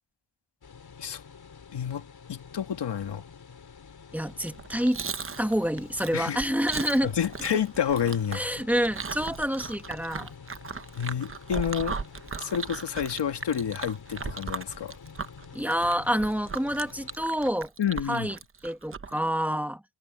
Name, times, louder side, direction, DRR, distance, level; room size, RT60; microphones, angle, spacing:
sound 1, 0.6-17.2, left 6 dB, 65° left, 3.1 m, -48 dB
voice 1, 1.7-3.2 6.1-6.4 7.0-8.4 10.9-12.0 12.4-14.9 17.8-18.3, left 8 dB, 85° left, 1.7 m, -29 dB
voice 2, 4.1-5.0 5.4-7.1 8.3-10.3 15.5-17.7 18.1-18.4 18.6-19.8, equal, 5° right, 1.9 m, -27 dB
Chewing mastication, 4.4-19.2, right 5 dB, 30° right, 0.9 m, -38 dB
wide cardioid pair, 145°, 41 cm